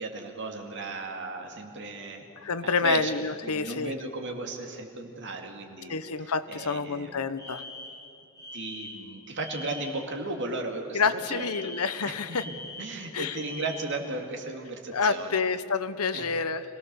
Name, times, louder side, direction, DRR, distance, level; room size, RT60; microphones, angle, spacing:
voice 1, 0.0-2.3 2.6-7.1 8.5-11.7 12.0-12.4 12.8-15.4 16.1-16.3, right 2 dB, 55° right, 3 dB, 2.4 m, -36 dB
voice 2, 2.4-3.9 5.9-7.6 10.9-12.4 13.1-13.4 14.9-16.6, left 5 dB, 80° left, 12 dB, 0.9 m, -28 dB
Alarm, 7.4-10.1 11.3-14.0, left 2 dB, 15° left, 3.1 m, -43 dB
26.5 x 17.5 x 7.0 m, 2.7 s
head